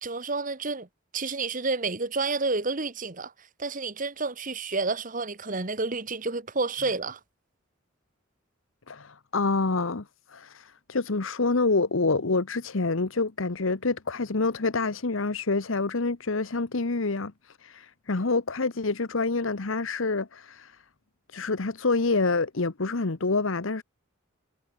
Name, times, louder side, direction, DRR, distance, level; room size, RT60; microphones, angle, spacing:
voice 1, 0.0-0.9 1.1-3.3 3.6-7.2, right 3 dB, 40° right, 1.4 m, -30 dB
voice 2, 8.9-20.8 21.3-23.8, left 3 dB, 70° left, 1.1 m, -27 dB
head